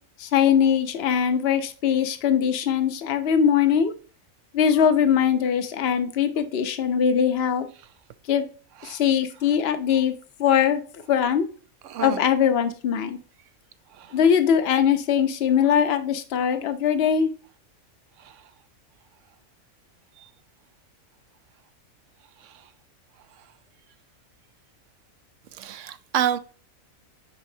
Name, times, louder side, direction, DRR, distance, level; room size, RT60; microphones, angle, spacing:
voice 1, 0.2-3.9 4.5-7.7 8.3-8.4 8.8-10.1 10.4-11.5 12.0-13.2 14.1-17.3, left 8 dB, 55° left, 1.0 m, -21 dB
voice 2, 11.8-12.2 13.9-14.2 18.2-18.4 20.2-20.3 22.4-22.7 25.5-26.4, right 10 dB, 70° right, 0.9 m, -30 dB
9.6 x 4.3 x 2.7 m
omnidirectional pair, 1.4 m